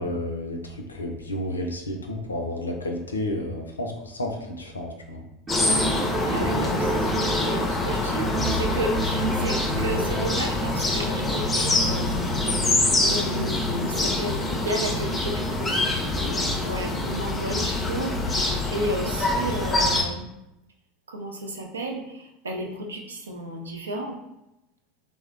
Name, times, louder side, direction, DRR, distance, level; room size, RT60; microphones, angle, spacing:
voice 1, 0.0-5.2, left 1 dB, 85° left, 3 dB, 0.3 m, -31 dB
sound 1, 5.5-20.0, left 2 dB, 20° left, 0.4 m, -25 dB
sound 2, 5.5-7.8 8.1-10.6, right 3 dB, 25° right, 0.7 m, -31 dB
voice 2, 6.2-20.3 21.1-24.2, right 1 dB, 80° right, 2 dB, 0.4 m, -33 dB
3.1 x 2.0 x 2.4 m, 0.88 s
figure-of-eight pair, 75°, 0 cm